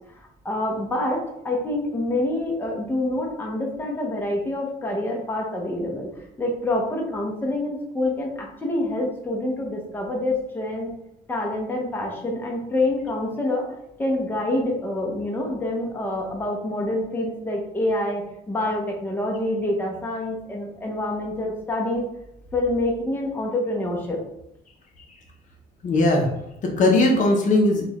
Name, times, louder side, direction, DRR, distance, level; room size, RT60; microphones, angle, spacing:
voice 1, 0.2-6.1 6.4-10.9 11.3-13.7 14.0-22.0 22.5-24.2, left 1 dB, 10° left, 0 dB, 0.7 m, -26 dB
voice 2, 25.8-27.8, left 2 dB, 50° left, 1 dB, 0.7 m, -19 dB
3.7 x 2.3 x 3.0 m, 0.80 s
cardioid pair, 110°, 17 cm